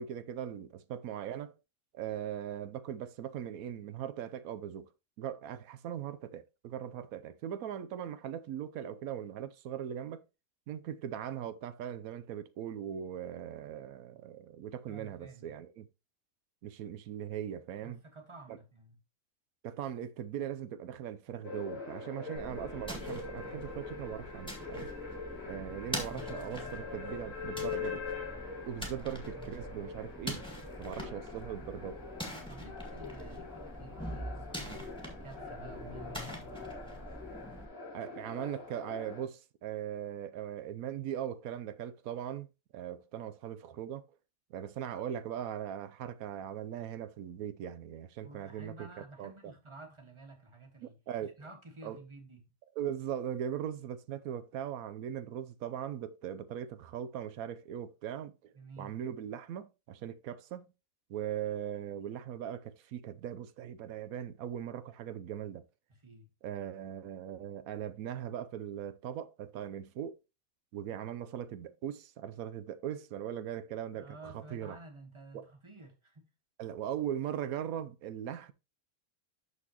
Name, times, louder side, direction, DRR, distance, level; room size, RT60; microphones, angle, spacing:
voice 1, 0.0-1.5 1.9-4.9 5.2-10.2 10.7-15.9 16.6-18.0 18.5-18.6 19.6-24.9 25.4-28.1 28.7-30.4 30.8-32.0 37.9-42.5 42.7-44.0 44.5-48.9 49.2-49.5 50.8-51.3 51.8-52.0 52.8-60.7 61.1-65.7 66.4-70.2 70.7-74.8 75.3-75.5 76.6-78.5, right 10 dB, 85° right, 1.1 m, -40 dB
voice 2, 14.9-15.5 17.8-19.0 25.5-25.7 29.0-29.1 32.5-34.8 35.2-36.6 48.2-51.0 51.4-52.5 58.5-59.0 65.9-66.3 73.9-76.3, right 3 dB, 20° right, 1.6 m, -52 dB
sound 1, 21.4-39.2, left 5 dB, 65° left, 3.0 m, -43 dB
sound 2, 22.3-37.6, equal, 5° left, 1.9 m, -44 dB
12.5 x 4.2 x 2.9 m
omnidirectional pair, 1.5 m